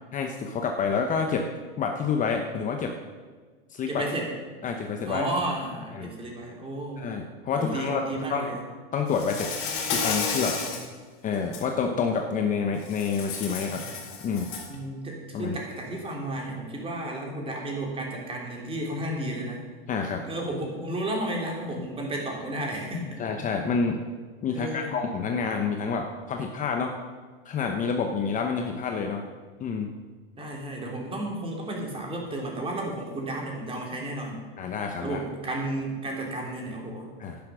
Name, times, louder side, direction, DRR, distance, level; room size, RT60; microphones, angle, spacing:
voice 1, 0.1-1.5 1.8-3.0 3.7-4.0 4.6-5.2 5.9-6.1 7.0-8.0 8.3-8.6 8.9-9.5 9.9-10.6 11.2-13.8 14.2-14.5 15.3-15.6 19.9-20.2 23.2-24.0 24.4-26.9 27.4-29.2 29.6-29.9 34.6-35.2 37.2-37.4, left 5 dB, 25° left, 4 dB, 1.0 m, -28 dB
voice 2, 3.9-4.3 5.0-7.0 7.6-8.6 10.6-10.8 13.6-13.9 14.7-19.6 20.2-23.3 24.5-24.9 30.4-34.4 35.0-37.1, right 1 dB, 20° right, -1 dB, 3.5 m, -33 dB
Insect, 9.1-10.9 11.3-11.6 12.9-14.7, left 5 dB, 45° left, 3.6 m, -31 dB
11.0 x 10.5 x 6.3 m, 1.4 s
supercardioid pair, 130°, 30 cm